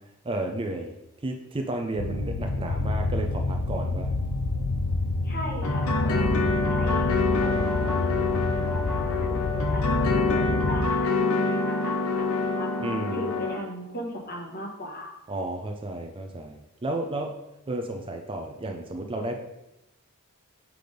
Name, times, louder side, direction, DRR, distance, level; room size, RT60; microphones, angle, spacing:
voice 1, 0.2-0.9 1.2-4.1 12.8-13.3 15.3-17.4 17.7-19.4, right 2 dB, 25° right, 4 dB, 0.5 m, -32 dB
sound 1, 2.0-10.8, left 2 dB, 85° left, 0.5 m, -28 dB
voice 2, 5.2-7.1 7.4-8.3 8.6-12.3 12.5-12.7 13.1-15.1, equal, 40° left, 0 dB, 1.3 m, -37 dB
sound 2, 5.6-13.6, left 3 dB, 70° left, 0.9 m, -26 dB
6.0 x 3.4 x 5.1 m, 0.92 s
head